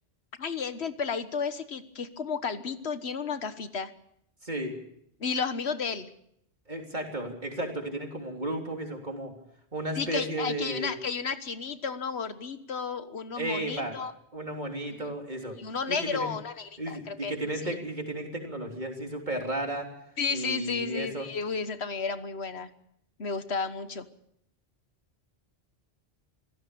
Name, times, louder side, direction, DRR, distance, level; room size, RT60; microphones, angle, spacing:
voice 1, 0.4-3.9 5.2-6.1 10.0-14.1 15.0-15.1 15.5-17.3 17.7-17.8 20.2-22.7 23.2-24.1, left 5 dB, 85° left, 11 dB, 1.6 m, -32 dB
voice 2, 4.4-4.7 6.7-9.3 9.7-11.0 13.4-14.0 14.3-15.6 15.9-16.3 16.8-19.9 20.3-21.3, right 1 dB, 45° right, 2 dB, 3.7 m, -33 dB
25.5 x 16.5 x 6.9 m, 0.73 s
omnidirectional pair, 1.1 m